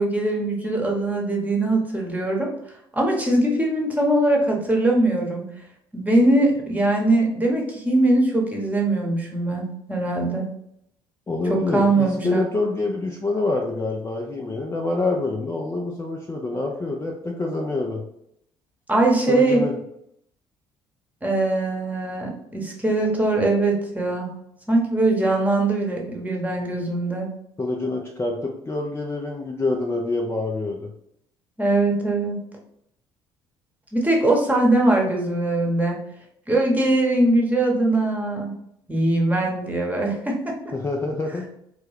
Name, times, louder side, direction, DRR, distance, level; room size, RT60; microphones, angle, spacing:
voice 1, 0.0-5.6 5.9-10.5 11.5-12.4 18.9-19.6 21.2-24.3 24.7-27.3 31.6-32.4 33.9-36.0 36.5-38.5 38.9-40.6, right 2 dB, 10° right, -1 dB, 1.1 m, -21 dB
voice 2, 11.3-18.0 19.3-19.8 27.6-30.9 40.7-41.5, left 2 dB, 20° left, 1 dB, 0.5 m, -26 dB
3.4 x 2.2 x 3.3 m, 0.74 s
hypercardioid pair, 55°, 13 cm